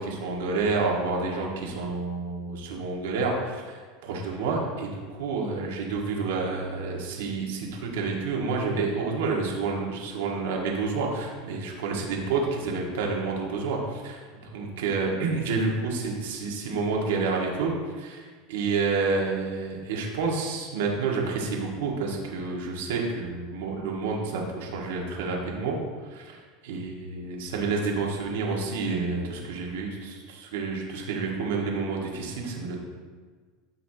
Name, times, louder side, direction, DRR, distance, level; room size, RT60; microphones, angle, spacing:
voice 1, 0.0-14.2 14.5-25.8 26.1-32.8, right 4 dB, 85° right, -1 dB, 1.9 m, -29 dB
14.0 x 5.9 x 3.0 m, 1.5 s
supercardioid pair, 145°, 0 cm